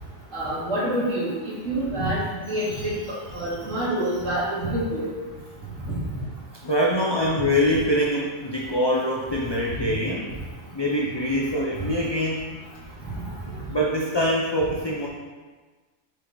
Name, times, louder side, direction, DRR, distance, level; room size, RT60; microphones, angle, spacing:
voice 1, 0.3-1.4 1.6-2.2 2.5-5.1 11.7-11.8, right 1 dB, 65° right, -8 dB, 2.7 m, -27 dB
voice 2, 6.6-10.3 10.7-12.4 13.7-15.1, equal, 30° left, -2 dB, 0.5 m, -24 dB
6.4 x 5.8 x 3.9 m, 1.3 s
omnidirectional pair, 1.4 m